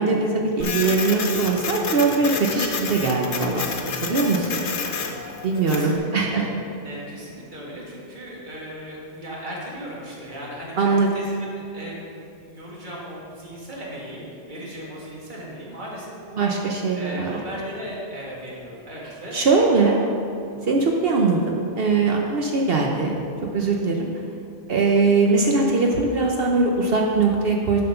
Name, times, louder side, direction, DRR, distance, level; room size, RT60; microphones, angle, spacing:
voice 1, 0.0-3.7 4.0-4.6 5.4-6.5 10.8-11.1 16.4-17.4 19.3-20.0 20.6-23.2 23.5-24.1 24.7-27.8, right 3 dB, 60° right, 0 dB, 0.9 m, -21 dB
Printer, 0.6-6.0, left 5 dB, 75° left, 1.1 m, -29 dB
voice 2, 3.4-4.3 5.3-6.5 6.8-19.4 19.7-19.9 20.5-20.8, equal, 45° right, -5 dB, 1.9 m, -37 dB
7.7 x 5.7 x 5.6 m, 2.6 s
omnidirectional pair, 1.2 m